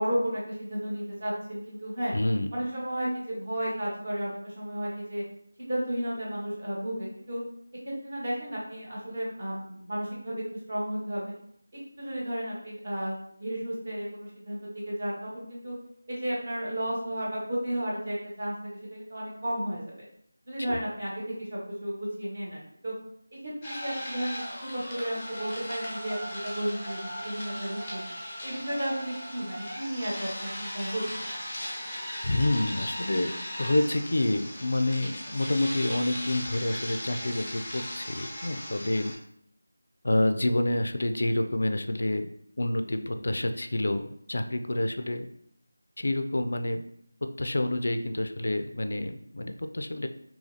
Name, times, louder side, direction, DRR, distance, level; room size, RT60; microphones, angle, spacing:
voice 1, 0.0-2.1 2.5-5.2 5.6-7.4 8.0-10.4 10.7-11.3 12.0-15.7 16.1-19.8 20.5-21.1 21.4-22.9 23.4-23.5 23.8-27.0 27.2-28.1 28.4-31.0, equal, 35° right, -5 dB, 1.1 m, -33 dB
voice 2, 2.1-2.5 20.6-20.8 32.2-33.3 33.6-39.1 40.0-45.3 46.0-46.8 47.4-50.1, left 1 dB, 55° left, 7 dB, 0.3 m, -28 dB
sound 1, 23.6-39.1, equal, 5° left, 0.6 m, -38 dB
3.9 x 2.8 x 2.6 m, 0.69 s
figure-of-eight pair, 180°, 0 cm